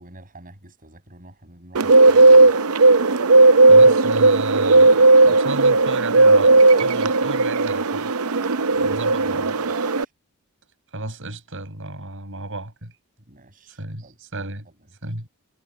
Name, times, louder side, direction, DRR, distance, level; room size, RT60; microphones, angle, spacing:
voice 1, 0.0-2.5 8.7-9.0 9.4-9.5 9.7-10.1 13.3-14.1, right 2 dB, 40° right, 7.8 m, -47 dB
Bird, 1.8-10.0, right 3 dB, 80° right, 0.7 m, -15 dB
voice 2, 3.6-8.1 8.8-9.6 10.9-12.9 13.8-14.7 15.0-15.3, right 2 dB, 65° right, 7.0 m, -33 dB
head